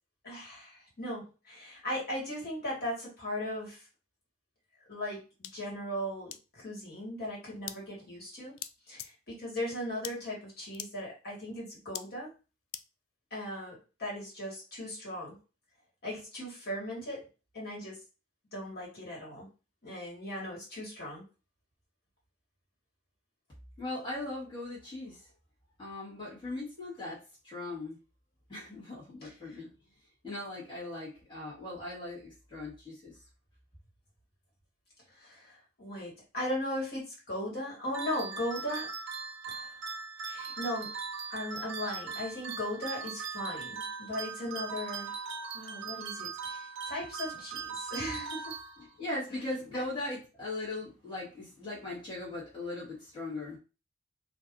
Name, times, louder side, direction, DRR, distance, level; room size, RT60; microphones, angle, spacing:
voice 1, 0.2-3.9 4.9-8.6 8.9-12.3 13.3-15.4 16.0-17.2 17.5-18.0 18.5-19.5 19.8-21.2 29.2-29.6 35.1-38.9 39.5-39.8 40.2-40.9 41.3-45.2 45.5-48.6 49.7-49.8, left 1 dB, 50° left, -5 dB, 1.6 m, -38 dB
sound 1, 5.4-5.5 6.3-6.4 7.7-7.8 8.6-8.7 9.0-9.1 10.0-10.1 10.7-10.9 12.0-12.1 12.7-12.8, left 11 dB, 85° left, 0.3 m, -39 dB
voice 2, 23.8-25.3 25.8-28.0 28.5-29.7 30.2-33.1 48.8-53.6, left 2 dB, 25° left, -8 dB, 1.3 m, -39 dB
sound 2, 37.9-49.2, right 5 dB, 60° right, 0.4 m, -40 dB
2.6 x 2.5 x 3.6 m, 0.33 s
head